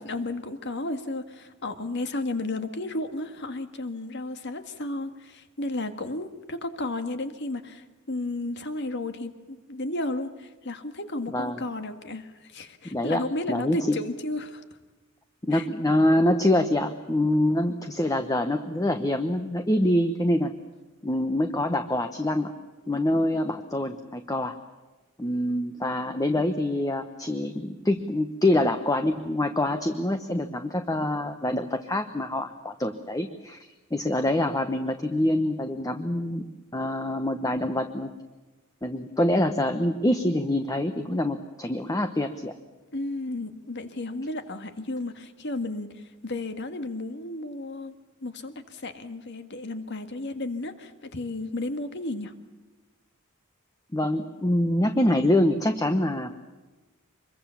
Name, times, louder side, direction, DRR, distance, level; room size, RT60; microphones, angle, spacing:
voice 1, 0.0-14.6 15.5-15.7 22.9-23.0 42.9-48.0 48.2-52.3, left 2 dB, 55° left, 8 dB, 1.8 m, -33 dB
voice 2, 11.3-11.6 12.9-13.2 13.5-14.0 15.4-20.5 21.0-22.5 22.9-24.6 25.2-38.1 38.8-42.5 53.9-56.4, left 1 dB, 15° left, 7 dB, 1.0 m, -25 dB
25.0 x 22.5 x 7.1 m, 1.2 s
head